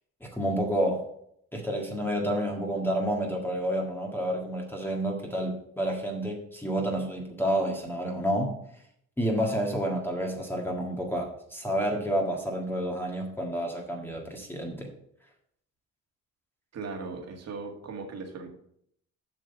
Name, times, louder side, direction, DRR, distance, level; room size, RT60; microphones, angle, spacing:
voice 1, 0.2-1.1 1.5-8.5 9.2-14.9, equal, 5° left, 0 dB, 1.7 m, -29 dB
voice 2, 16.7-18.5, right 4 dB, 60° right, 3 dB, 2.0 m, -38 dB
7.4 x 5.2 x 6.8 m, 0.70 s
cardioid pair, 90°, 30 cm